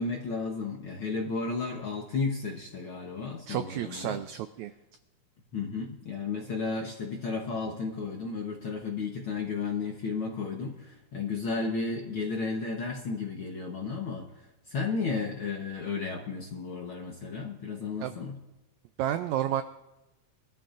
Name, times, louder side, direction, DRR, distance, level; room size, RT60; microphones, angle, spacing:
voice 1, 0.0-4.2 5.5-18.4, left 4 dB, 60° left, 0 dB, 1.4 m, -33 dB
voice 2, 3.5-4.7 18.0-18.1 19.0-19.6, right 11 dB, 85° right, 10 dB, 1.6 m, -31 dB
23.0 x 13.0 x 2.5 m, 0.98 s
omnidirectional pair, 3.9 m